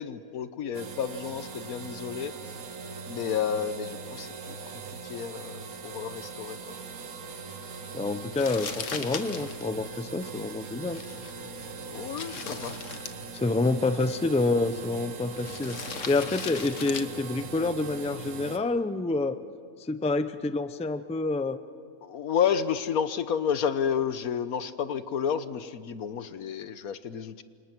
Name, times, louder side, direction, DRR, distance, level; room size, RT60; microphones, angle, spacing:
voice 1, 0.0-2.3 3.1-4.6 5.0-6.6 11.8-12.7 22.0-27.4, left 7 dB, 85° left, 12 dB, 1.4 m, -31 dB
sound 1, 0.7-18.6, right 5 dB, 80° right, 1.7 m, -41 dB
voice 2, 7.9-11.0 13.3-19.4 19.8-21.6, left 3 dB, 10° left, 11 dB, 0.4 m, -28 dB
Crumpling crinkling, 8.3-18.5, left 6 dB, 60° left, 1.5 m, -41 dB
29.0 x 26.0 x 6.1 m, 2.3 s
omnidirectional pair, 1.5 m